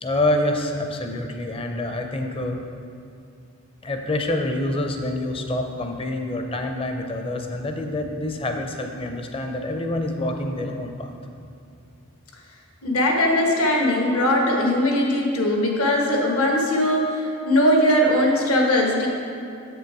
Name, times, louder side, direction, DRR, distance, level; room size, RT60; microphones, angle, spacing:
voice 1, 0.0-2.6 3.8-11.1, left 1 dB, 25° left, 4 dB, 0.6 m, -26 dB
voice 2, 12.8-19.1, left 1 dB, 70° left, 0 dB, 1.2 m, -20 dB
7.3 x 6.8 x 4.7 m, 2.5 s
head